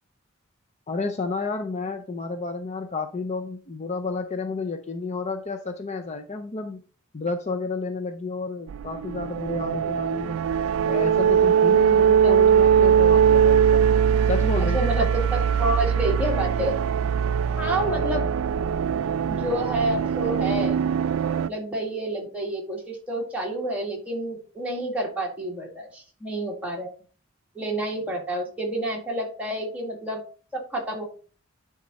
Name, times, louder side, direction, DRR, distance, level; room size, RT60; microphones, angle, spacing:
voice 1, 0.9-6.8 7.1-10.4 10.8-13.8 14.3-15.1 17.8-18.3, left 3 dB, 35° left, 6 dB, 0.5 m, -31 dB
sound 1, 8.7-21.5, right 8 dB, 75° right, 0.3 m, -21 dB
voice 2, 14.6-16.8 17.6-18.2 19.3-20.8 21.5-26.9 27.6-30.2 30.5-31.0, right 1 dB, 5° right, -2 dB, 1.9 m, -29 dB
10.5 x 3.6 x 4.1 m, 0.40 s
head